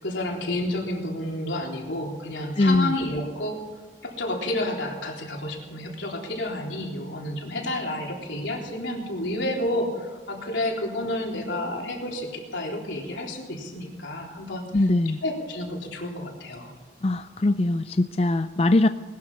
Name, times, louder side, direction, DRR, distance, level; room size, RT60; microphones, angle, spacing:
voice 1, 0.0-3.6 4.0-14.7 15.2-16.7, left 1 dB, 90° left, 0 dB, 3.7 m, -30 dB
voice 2, 2.6-2.9 14.7-15.2 17.0-18.9, left 2 dB, 35° left, 10 dB, 0.4 m, -21 dB
20.0 x 12.0 x 5.6 m, 1.4 s
head